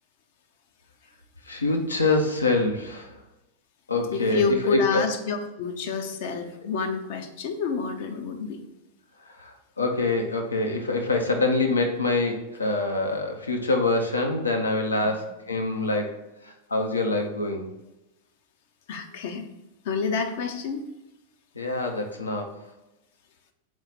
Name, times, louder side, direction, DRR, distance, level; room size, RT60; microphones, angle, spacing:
voice 1, 1.4-3.2 3.9-5.1 9.2-16.2 16.4-17.7 21.5-22.5, left 2 dB, 75° left, 3 dB, 1.1 m, -25 dB
voice 2, 4.1-8.6 15.0-15.1 18.9-19.5 19.8-20.8, left 5 dB, 50° left, 5 dB, 0.9 m, -28 dB
6.4 x 4.8 x 4.4 m, 0.98 s
figure-of-eight pair, 90°, 0 cm